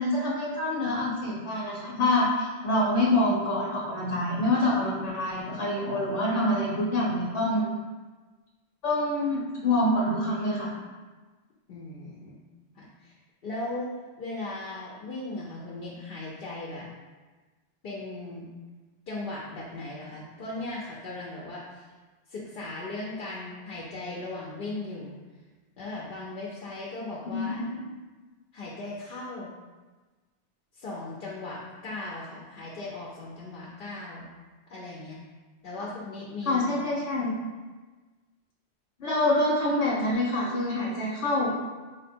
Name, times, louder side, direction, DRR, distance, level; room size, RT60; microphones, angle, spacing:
voice 1, 0.0-7.7 8.8-10.7 27.2-27.8 36.4-37.3 39.0-41.5, left 1 dB, 80° left, -5 dB, 1.0 m, -26 dB
voice 2, 11.7-12.3 12.8-13.2 13.4-13.9 14.2-16.9 17.8-18.5 19.1-21.9 22.3-25.1 25.8-27.6 28.5-29.5 30.8-34.3 34.7-35.2 35.6-36.6, left 2 dB, 60° left, -5 dB, 0.8 m, -37 dB
4.4 x 2.1 x 4.2 m, 1.3 s
omnidirectional pair, 1.2 m